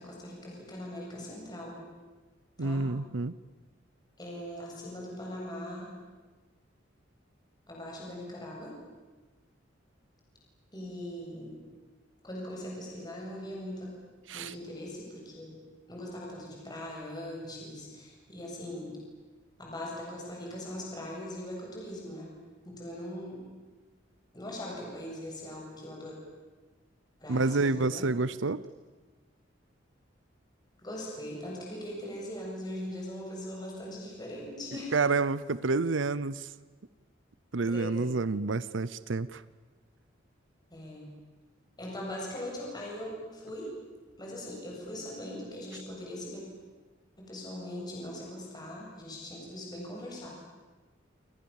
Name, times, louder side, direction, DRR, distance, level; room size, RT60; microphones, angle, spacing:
voice 1, 0.0-1.8 2.6-2.9 4.2-5.9 7.7-8.7 10.7-11.6 12.2-13.9 14.3-15.6 15.9-19.0 19.6-22.3 22.6-23.5 24.3-26.2 27.2-28.1 30.8-34.9 37.7-38.1 40.7-41.1 41.8-43.7 44.2-46.4 47.2-50.3, left 1 dB, 20° left, -3 dB, 8.0 m, -40 dB
voice 2, 2.6-3.3 14.3-14.5 27.3-28.6 34.9-36.5 37.5-39.4, right 3 dB, 75° right, 17 dB, 0.8 m, -28 dB
29.5 x 26.0 x 7.3 m, 1.3 s
head